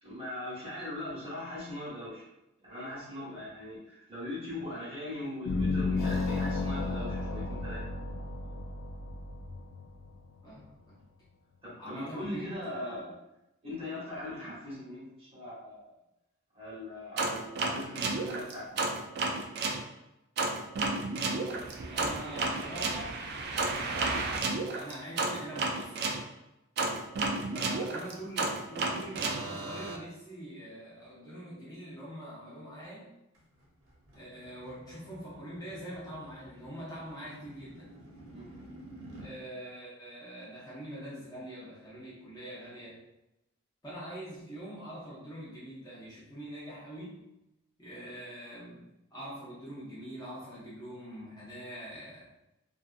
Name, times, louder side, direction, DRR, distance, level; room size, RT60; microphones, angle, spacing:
voice 1, 0.0-2.2 2.6-7.8 11.6-13.1 13.6-15.9 16.5-18.7 19.0-19.1 26.8-27.0 38.3-38.4, left 1 dB, 30° right, -7 dB, 1.0 m, -40 dB
sound 1, 5.5-10.7, left 3 dB, 75° left, 0.3 m, -33 dB
voice 2, 10.4-11.0 11.8-12.8 21.2-23.3 23.6-26.2 27.5-33.1 34.1-38.0 39.2-43.0 43.8-47.2 47.8-52.3, right 1 dB, 20° left, -9 dB, 0.7 m, -44 dB
sound 2, 17.2-19.8 20.4-26.2 26.8-30.0, right 3 dB, 50° right, 0.4 m, -32 dB
sound 3, 33.3-39.3, right 1 dB, 70° right, 0.8 m, -51 dB
2.6 x 2.3 x 2.5 m, 0.90 s
head